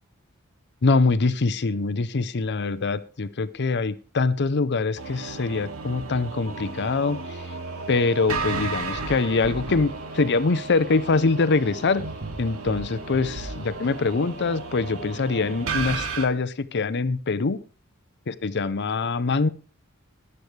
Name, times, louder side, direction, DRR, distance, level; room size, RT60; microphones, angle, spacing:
voice 1, 0.8-7.4 7.9-12.0 12.4-17.6 18.3-19.5, left 3 dB, 55° left, 15 dB, 0.7 m, -24 dB
sound 1, 5.0-16.3, right 4 dB, 80° right, 2.4 m, -33 dB
22.5 x 8.0 x 3.3 m, 0.36 s
head